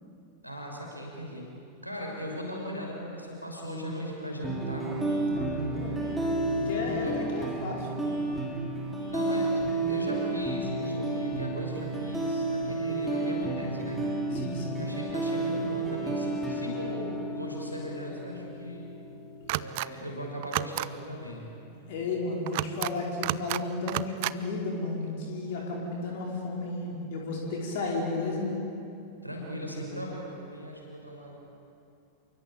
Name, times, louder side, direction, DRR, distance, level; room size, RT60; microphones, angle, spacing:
voice 1, 0.4-1.5 1.8-4.9 6.7-7.3 9.1-14.0 14.8-18.9 19.5-21.5 29.2-31.4, equal, 90° left, -1 dB, 6.1 m, -38 dB
sound 1, 4.4-19.5, right 2 dB, 5° right, 5.7 m, -31 dB
voice 2, 5.2-6.2 6.6-8.1 14.3-14.8 21.7-28.5, left 3 dB, 55° left, -1 dB, 4.9 m, -33 dB
sound 2, 19.5-19.9 20.4-20.9 22.5-22.9 23.2-23.6 23.9-24.3, right 20 dB, 50° right, 0.6 m, -31 dB
28.0 x 23.5 x 9.0 m, 2.6 s
figure-of-eight pair, 90°, 0 cm